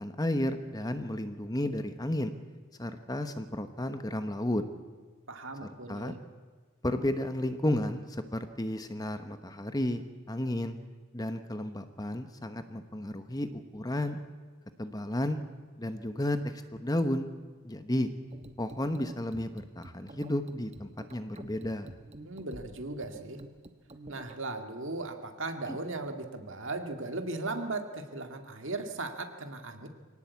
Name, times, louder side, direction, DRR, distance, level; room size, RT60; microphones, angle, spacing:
voice 1, 0.0-2.3 2.8-4.7 5.9-6.1 6.8-10.8 11.1-14.2 14.8-15.4 15.8-17.3 17.6-18.1 18.6-21.9 25.7-25.8, left 1 dB, 15° left, 9 dB, 1.0 m, -32 dB
voice 2, 5.3-6.2 22.2-23.4 24.1-29.9, right 2 dB, 55° right, 5 dB, 2.1 m, -37 dB
sound 1, 18.3-24.3, right 1 dB, 30° right, 1.1 m, -49 dB
23.5 x 18.0 x 8.3 m, 1.4 s
head